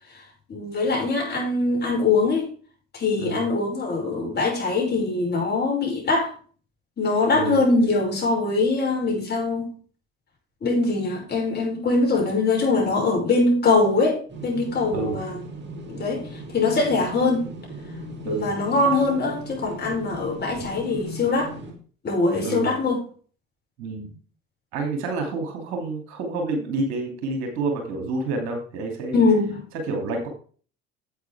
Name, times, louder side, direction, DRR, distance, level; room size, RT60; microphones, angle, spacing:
voice 1, 0.5-2.5 2.9-6.3 7.0-9.7 10.6-15.4 15.9-17.4 18.2-21.6 22.0-23.0 29.1-29.6, left 3 dB, 30° left, 5.6 m, -22 dB
sound 1, 14.3-21.7, right 2 dB, 35° right, 3.1 m, -38 dB
voice 2, 22.4-22.7 23.8-24.2 24.7-29.2 29.8-30.3, right 3 dB, 60° right, 2.8 m, -28 dB
10.0 x 7.9 x 3.5 m
figure-of-eight pair, 65°, 31 cm